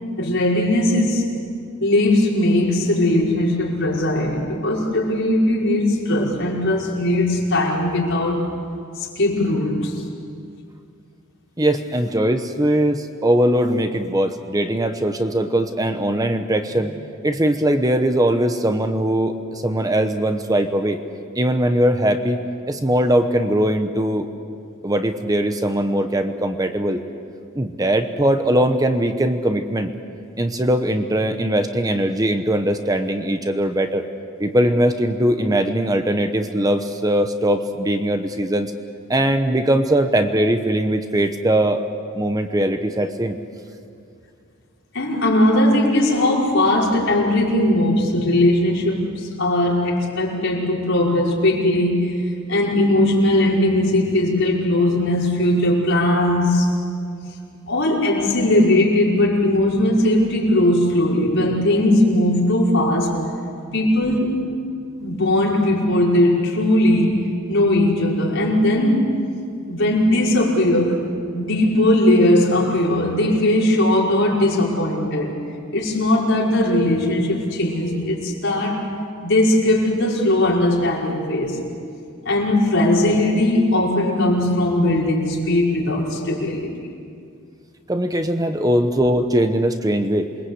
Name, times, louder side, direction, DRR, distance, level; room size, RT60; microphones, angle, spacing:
voice 1, 0.2-1.2 1.8-8.5 9.2-10.0 44.9-56.7 57.7-63.2 63.7-64.4 65.0-67.2 67.5-69.1 69.7-71.0 71.3-75.4 75.7-78.9 79.2-81.6 82.2-86.7, left 1 dB, 60° left, -3 dB, 5.3 m, -19 dB
voice 2, 11.6-16.9 17.2-21.0 21.3-22.4 22.7-24.3 24.8-27.0 27.5-29.9 30.4-34.0 34.4-38.7 39.1-41.8 42.1-43.4 87.9-90.3, right 1 dB, 15° right, 7 dB, 1.0 m, -20 dB
28.0 x 21.5 x 8.1 m, 2.4 s
head